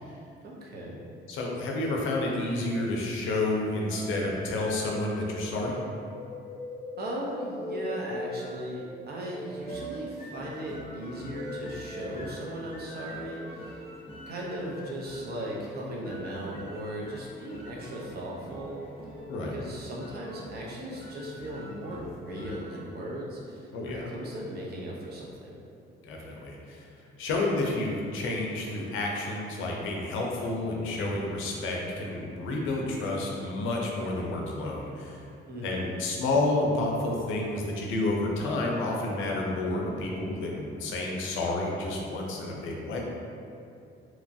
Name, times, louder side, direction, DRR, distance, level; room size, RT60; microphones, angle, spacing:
voice 1, 0.4-1.0 7.0-13.8 14.3-18.8 19.5-25.6 35.5-35.9, right 1 dB, 50° right, -4 dB, 0.6 m, -37 dB
voice 2, 1.3-5.8 19.3-19.6 23.7-24.1 26.0-26.8 27.2-35.2 35.6-43.0, left 2 dB, 85° left, -1 dB, 0.5 m, -30 dB
sound 1, 3.8-13.7 14.5-14.8 16.8-17.1 17.9-18.4 19.0-19.3 20.1-20.6 21.0-22.1, left 1 dB, ahead, 1.1 m, -42 dB
sound 2, 9.6-22.9, equal, 30° left, 0.5 m, -47 dB
2.9 x 2.3 x 2.5 m, 2.5 s
cardioid pair, 90°, 20 cm